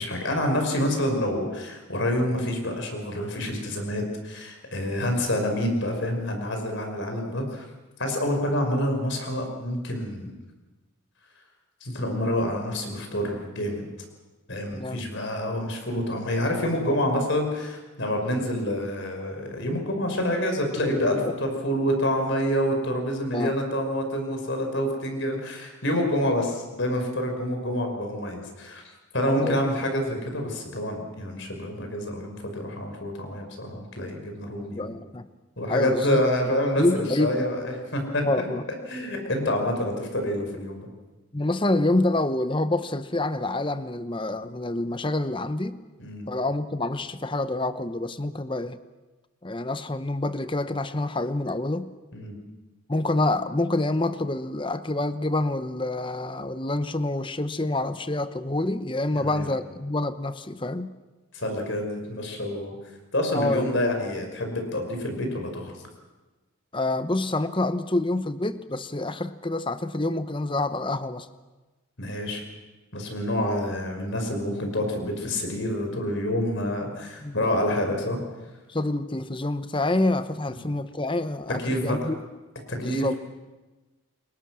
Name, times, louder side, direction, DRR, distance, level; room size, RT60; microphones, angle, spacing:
voice 1, 0.0-7.6 8.0-10.3 11.8-13.8 14.5-28.8 29.1-34.9 35.6-38.5 38.9-40.9 46.0-46.3 52.1-52.4 59.1-59.5 61.3-62.7 63.1-65.7 72.0-72.4 72.9-78.2 81.6-82.1 82.7-83.2, left 1 dB, 60° left, 4 dB, 5.5 m, -27 dB
voice 2, 14.7-15.0 23.3-23.5 29.4-29.6 34.7-35.3 35.7-36.2 36.8-37.4 38.2-38.6 41.3-45.8 46.3-48.8 49.4-51.9 52.9-60.9 63.3-63.6 66.7-71.3 77.2-77.5 78.7-82.2 82.8-83.2, left 2 dB, 25° left, 11 dB, 0.9 m, -27 dB
28.5 x 22.5 x 6.3 m, 1.2 s
head